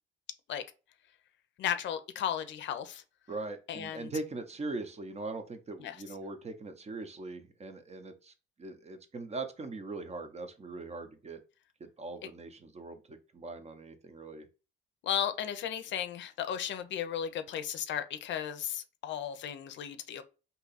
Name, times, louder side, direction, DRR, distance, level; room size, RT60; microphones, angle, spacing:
voice 1, 1.6-3.0 3.7-4.1 5.8-6.0 15.0-20.2, left 9 dB, 70° left, 0.5 m, -35 dB
voice 2, 3.3-8.3 8.6-11.4 11.8-14.5, right 3 dB, 35° right, 0.6 m, -41 dB
2.7 x 2.3 x 4.0 m
cardioid pair, 90°, 20 cm